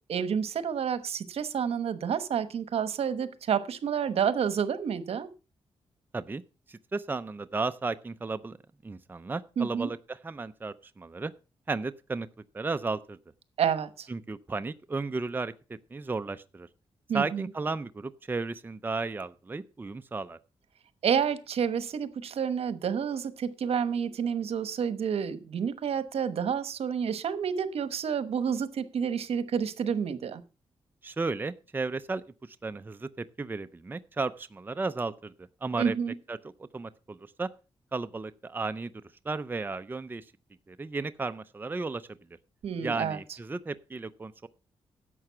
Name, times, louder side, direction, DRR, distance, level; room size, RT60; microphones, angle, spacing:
voice 1, 0.1-5.3 9.6-9.9 13.6-14.1 17.1-17.5 21.0-30.4 35.8-36.1 42.6-43.2, right 7 dB, 75° right, 1.1 m, -29 dB
voice 2, 6.7-8.6 8.8-11.3 11.7-12.3 12.5-13.2 14.1-15.5 15.9-16.7 17.1-20.4 31.0-35.9 36.3-36.4 36.7-37.5 37.9-38.9 39.2-40.2 40.7-42.1 42.8-44.5, right 3 dB, 20° right, 0.5 m, -34 dB
11.0 x 7.6 x 5.6 m
wide cardioid pair, 115°, 10 cm